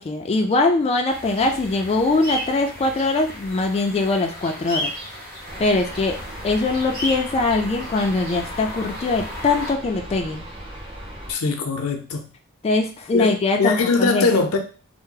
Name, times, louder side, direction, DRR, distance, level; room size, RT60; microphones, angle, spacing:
voice 1, 0.0-4.9 5.6-6.2 6.4-10.4 12.6-14.3, left 3 dB, 30° left, 0.3 m, -22 dB
sound 1, 1.1-9.7, left 1 dB, 50° right, 1.3 m, -34 dB
sound 2, 5.5-11.3, right 1 dB, 25° right, 0.7 m, -38 dB
voice 2, 11.3-12.2 13.1-13.3 13.6-14.6, left 4 dB, 85° left, 0.6 m, -21 dB
2.7 x 2.0 x 3.7 m
head